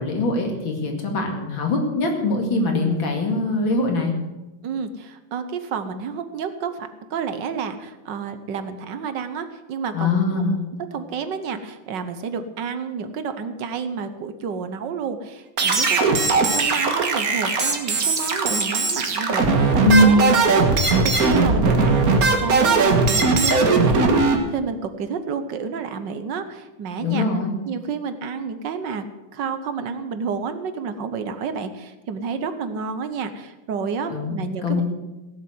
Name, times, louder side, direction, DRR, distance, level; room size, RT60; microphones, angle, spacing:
voice 1, 0.0-4.1 9.9-10.6 19.8-20.2 27.0-27.5 34.1-34.4 34.6-34.8, left 1 dB, 80° left, 2 dB, 3.0 m, -21 dB
voice 2, 4.6-10.2 10.9-27.3 27.6-29.0 29.3-34.8, right 5 dB, 65° right, 10 dB, 1.6 m, -30 dB
sound 1, 15.6-24.4, right 3 dB, 50° right, 1.9 m, -19 dB
17.0 x 7.5 x 7.8 m, 1.1 s
omnidirectional pair, 2.1 m